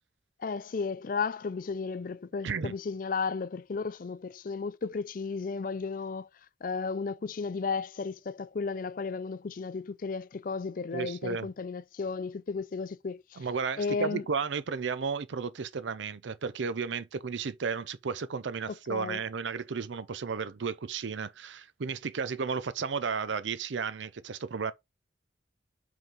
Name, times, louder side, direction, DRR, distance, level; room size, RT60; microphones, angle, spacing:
voice 1, 0.4-6.3 6.6-13.5 13.8-14.2 18.9-19.2, left 4 dB, 45° left, 0.4 m, -34 dB
voice 2, 2.4-2.7 10.9-11.5 13.4-24.7, right 5 dB, 80° right, 0.5 m, -33 dB
5.4 x 3.8 x 5.1 m
head